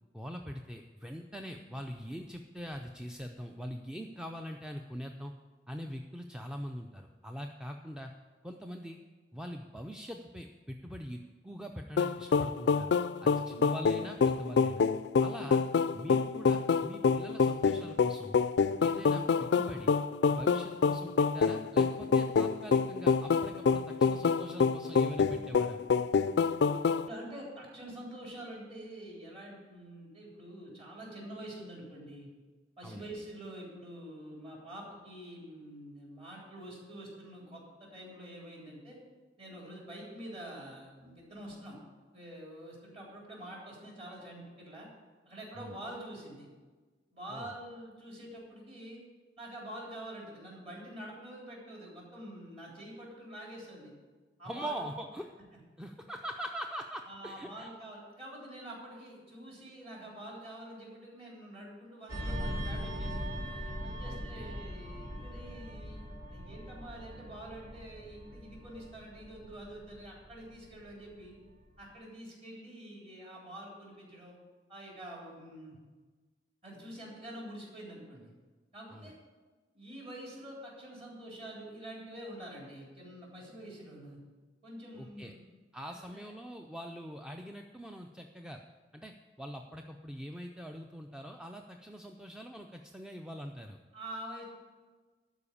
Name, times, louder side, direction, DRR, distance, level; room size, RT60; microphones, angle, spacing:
voice 1, 0.1-5.3 5.7-8.1 8.4-9.0 9.3-11.2 11.4-12.9 13.2-14.8 15.2-15.6 15.9-18.4 18.8-19.9 20.3-25.8 32.8-33.0 45.6-45.8 47.3-47.5 54.5-55.3 55.8-57.7 64.0-64.6 78.9-79.1 84.9-85.3 85.7-88.6 88.9-93.8, equal, 5° right, 3 dB, 0.4 m, -43 dB
sound 1, 12.0-27.1, left 5 dB, 65° left, 0.3 m, -27 dB
voice 2, 27.1-32.3 32.8-39.0 39.4-41.8 42.1-44.9 45.3-46.5 47.1-49.0 49.4-53.9 54.4-54.9 57.1-63.3 63.8-66.0 66.3-71.4 71.8-74.4 74.7-75.8 76.6-78.3 78.7-79.2 79.7-84.2 84.6-85.4 85.9-86.3 93.9-94.4, right 1 dB, 35° right, -3 dB, 3.6 m, -46 dB
sound 2, 62.1-71.1 71.5-71.7, equal, 55° right, 1.9 m, -40 dB
12.0 x 4.9 x 8.5 m, 1.3 s
head